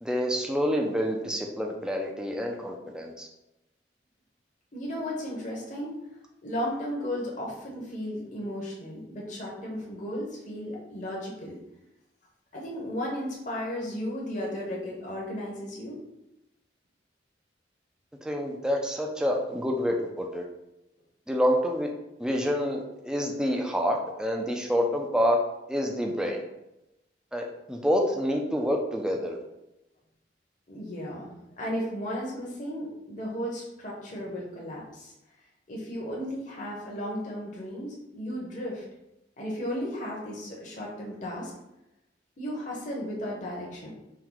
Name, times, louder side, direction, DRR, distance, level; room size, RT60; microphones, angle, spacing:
voice 1, 0.0-3.3 18.2-20.4 21.3-21.9 22.2-25.4 25.7-26.4 27.3-29.4, equal, 5° right, 1 dB, 0.4 m, -27 dB
voice 2, 4.7-6.0 6.4-11.6 12.5-16.0 30.7-31.3 31.6-35.1 35.7-38.8 39.4-41.5 42.4-43.9, equal, 45° left, -3 dB, 0.9 m, -35 dB
4.4 x 2.2 x 3.8 m, 0.91 s
head